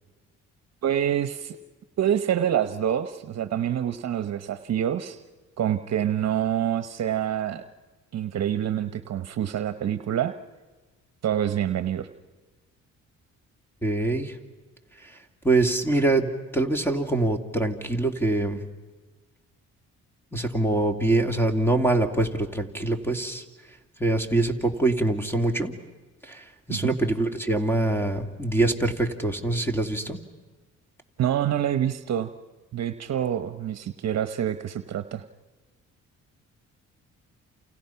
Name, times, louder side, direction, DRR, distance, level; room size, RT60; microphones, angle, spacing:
voice 1, 0.8-1.6 2.0-5.2 5.6-7.6 8.1-10.4 11.2-12.1 26.7-26.9 31.2-32.3 32.7-35.2, right 10 dB, 60° right, 10 dB, 1.0 m, -26 dB
voice 2, 13.8-14.4 15.0-15.2 15.4-18.6 20.3-23.4 24.0-25.7 26.2-30.2, right 2 dB, 5° left, 6 dB, 2.7 m, -24 dB
29.0 x 28.5 x 5.8 m, 1.3 s
cardioid pair, 90°, 30 cm